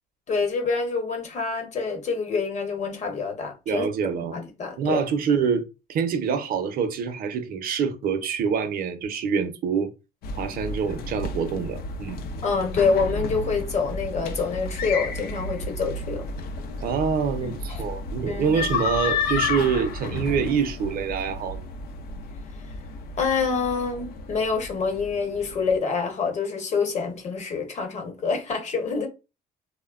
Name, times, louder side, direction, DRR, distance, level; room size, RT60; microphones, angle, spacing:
voice 1, 0.3-3.9 4.3-5.0 12.4-16.2 17.4-17.8 18.3-18.5 23.2-29.1, left 5 dB, 45° left, 0.9 m, -26 dB
voice 2, 3.7-4.4 4.8-5.6 5.9-9.9 10.4-12.2 16.8-21.6, right 6 dB, 60° right, 0.5 m, -26 dB
sound 1, 10.2-25.7, left 3 dB, 65° left, 0.4 m, -32 dB
3.1 x 2.1 x 2.3 m
cardioid pair, 110°, 17 cm